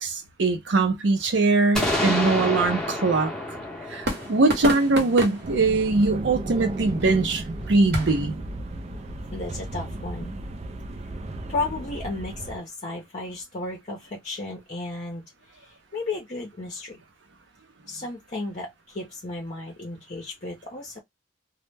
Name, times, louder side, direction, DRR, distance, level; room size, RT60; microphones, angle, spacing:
voice 1, 0.0-3.6 3.9-8.4, right 3 dB, 75° right, 0.6 m, -22 dB
sound 1, 1.2-8.3, right 1 dB, 60° right, 1.0 m, -35 dB
sound 2, 1.7-5.5, left 1 dB, 5° left, 0.8 m, -29 dB
sound 3, 5.4-12.6, right 2 dB, 35° right, 0.4 m, -35 dB
voice 2, 9.3-10.4 11.5-15.2 15.9-17.0 17.9-21.0, left 3 dB, 45° left, 0.7 m, -33 dB
2.1 x 2.1 x 3.2 m
head